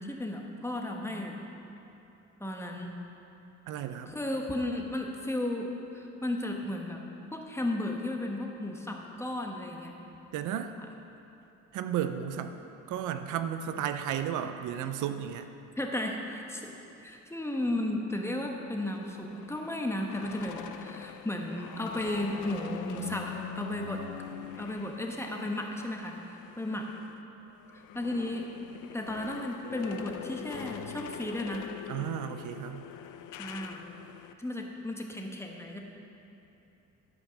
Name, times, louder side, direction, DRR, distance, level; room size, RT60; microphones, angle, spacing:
voice 1, 0.0-1.4 2.4-2.9 4.1-5.7 5.9-7.0 7.3-9.9 15.8-16.8 17.0-24.0 24.6-26.1 26.6-26.9 27.7-28.4 28.9-31.7 33.4-33.8 34.4-35.8, left 1 dB, 10° left, 1 dB, 1.2 m, -34 dB
voice 2, 3.7-4.1 10.3-10.8 11.7-12.6 12.9-15.5 31.9-32.9, right 9 dB, 80° right, 9 dB, 0.6 m, -33 dB
sound 1, 18.7-27.1 27.5-34.3, left 9 dB, 80° left, 0.5 m, -44 dB
12.0 x 5.3 x 6.3 m, 3.0 s
cardioid pair, 90°, 30 cm